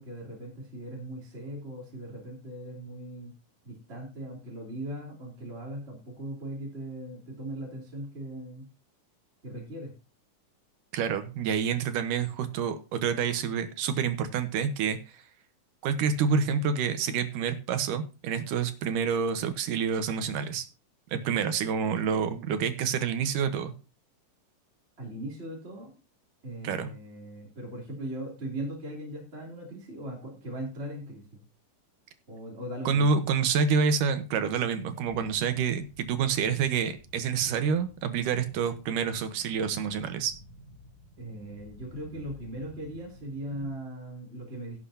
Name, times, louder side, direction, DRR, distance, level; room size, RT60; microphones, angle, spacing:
voice 1, 0.0-3.3 3.6-8.6 9.4-9.9 25.0-25.9 26.4-31.4 32.3-33.1 41.2-44.8, right 1 dB, 20° right, -3 dB, 2.9 m, -39 dB
voice 2, 10.9-15.2 15.8-20.7 21.1-23.7 26.6-26.9 32.9-40.3, right 6 dB, 80° right, 9 dB, 2.7 m, -28 dB
sound 1, 35.0-43.7, left 1 dB, 55° left, 3.4 m, -52 dB
17.0 x 8.1 x 2.8 m, 0.31 s
omnidirectional pair, 3.7 m